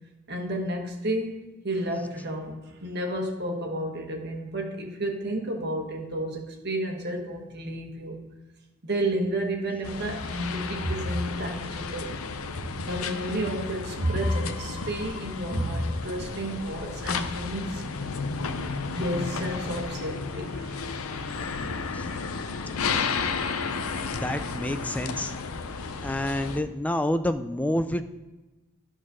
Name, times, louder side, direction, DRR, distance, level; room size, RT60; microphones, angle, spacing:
voice 1, 0.3-8.2 8.8-12.1 12.5-17.8 18.9-21.8 22.1-22.3, right 1 dB, 50° right, 2 dB, 1.3 m, -31 dB
sound 1, 9.8-26.6, left 4 dB, 80° left, 0.6 m, -33 dB
voice 2, 24.1-25.3 25.8-28.1, left 1 dB, 5° left, 10 dB, 0.3 m, -28 dB
11.0 x 4.0 x 6.2 m, 1.1 s
head